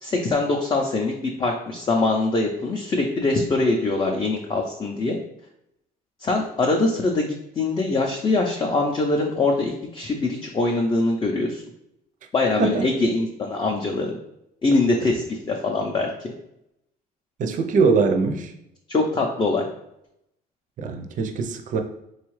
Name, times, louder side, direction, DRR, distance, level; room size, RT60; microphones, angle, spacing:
voice 1, 0.0-5.2 6.2-11.6 12.3-14.1 14.6-16.3 18.9-19.6, left 2 dB, 25° left, 1 dB, 0.5 m, -23 dB
voice 2, 12.6-12.9 17.4-18.5 20.8-21.8, right 4 dB, 50° right, 5 dB, 0.5 m, -22 dB
3.7 x 2.3 x 3.1 m, 0.79 s
cardioid pair, 110°, 17 cm